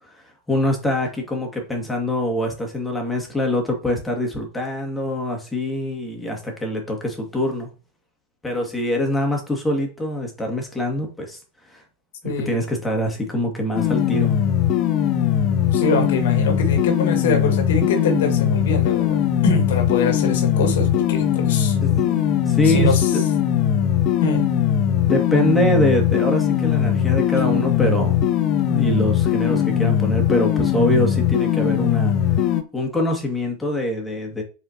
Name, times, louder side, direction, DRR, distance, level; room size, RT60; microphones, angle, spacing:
voice 1, 0.5-7.7 8.4-11.4 11.7-11.8 12.2-14.3 21.8-22.2 22.5-23.2 25.1-28.2 28.6-32.1 32.7-34.4, left 1 dB, 10° left, 2.1 m, -24 dB
sound 1, 13.7-32.6, left 10 dB, 35° left, 0.8 m, -20 dB
voice 2, 15.7-19.2 19.4-21.8 22.6-23.1 24.2-24.4, left 3 dB, 55° left, 1.9 m, -23 dB
7.8 x 4.3 x 2.9 m
figure-of-eight pair, 90°, 0 cm